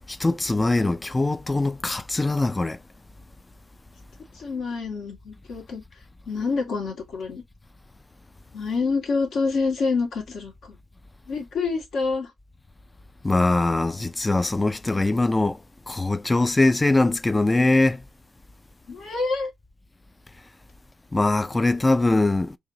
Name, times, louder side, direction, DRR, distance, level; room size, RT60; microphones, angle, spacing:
voice 1, 0.1-2.8 13.2-15.6 15.9-18.0 21.1-22.6, left 2 dB, 20° left, 0.4 m, -22 dB
voice 2, 4.3-5.8 6.3-7.4 8.5-10.8 11.3-12.3 18.9-19.5, left 4 dB, 70° left, 1.9 m, -27 dB
4.8 x 3.0 x 2.7 m
cardioid pair, 70°, 0 cm